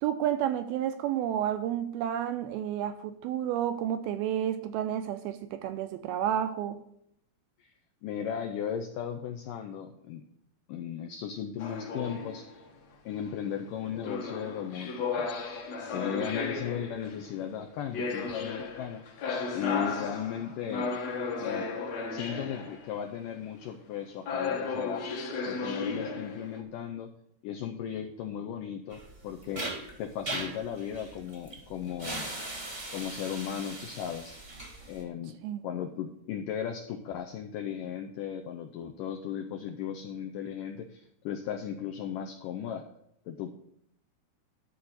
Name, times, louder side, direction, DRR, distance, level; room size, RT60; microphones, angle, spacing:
voice 1, 0.0-6.8 35.4-35.7, right 10 dB, 80° right, 2.3 m, -31 dB
voice 2, 8.0-10.2 10.7-12.6 13.1-15.3 15.9-19.2 19.5-20.9 21.4-21.7 22.1-25.0 25.5-27.1 27.4-29.7 30.0-32.3 32.9-34.4 34.9-35.4 35.6-42.8 43.3-43.5, left 8 dB, 85° left, 1.9 m, -36 dB
sound 1, 11.6-12.7 13.9-17.4 17.9-22.9 24.3-26.6, left 4 dB, 60° left, 1.9 m, -34 dB
sound 2, 28.9-35.0, right 2 dB, 35° right, 0.9 m, -39 dB
12.5 x 4.3 x 7.8 m
omnidirectional pair, 4.8 m